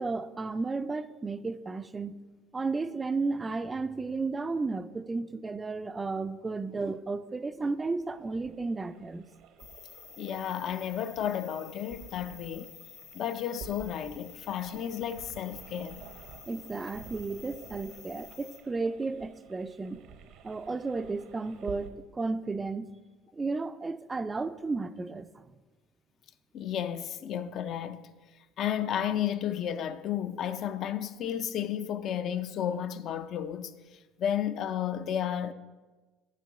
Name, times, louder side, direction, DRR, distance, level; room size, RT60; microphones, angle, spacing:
voice 1, 0.0-2.1 2.5-9.3 16.5-20.0 20.4-22.9 23.3-25.5, right 3 dB, 20° right, 0.4 m, -33 dB
sound 1, 7.5-21.9, right 7 dB, 65° right, 0.8 m, -51 dB
sound 2, 9.6-18.6, left 8 dB, 75° left, 1.8 m, -51 dB
voice 2, 10.2-12.7 13.1-16.0 26.5-28.1 28.6-35.5, left 9 dB, 55° left, 0.5 m, -32 dB
7.4 x 5.2 x 6.8 m
supercardioid pair, 100°, 0 cm